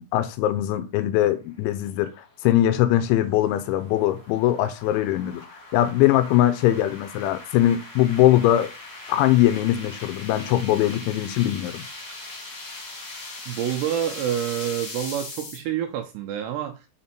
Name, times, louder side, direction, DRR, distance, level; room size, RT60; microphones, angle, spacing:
voice 1, 0.0-2.1 2.4-5.5 5.7-8.7 9.1-11.8, left 13 dB, 80° left, 2.9 m, -21 dB
sound 1, 1.6-15.6, left 2 dB, 35° left, 2.7 m, -40 dB
voice 2, 13.5-16.9, right 10 dB, 80° right, 2.6 m, -28 dB
6.0 x 5.4 x 4.3 m
omnidirectional pair, 5.4 m